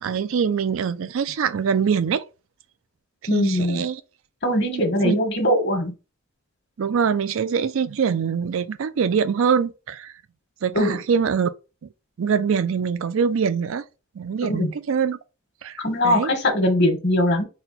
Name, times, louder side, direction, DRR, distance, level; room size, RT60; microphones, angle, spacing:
voice 1, 0.0-2.2 3.3-4.0 4.7-5.2 6.8-10.1 10.6-11.5 12.2-13.8 14.2-15.2 15.6-16.3, right 6 dB, 65° right, 0.4 m, -23 dB
voice 2, 3.3-3.8 4.4-5.9 10.7-10.9 14.4-14.7 15.8-17.4, left 1 dB, 50° left, 1.3 m, -21 dB
4.2 x 2.2 x 4.1 m
head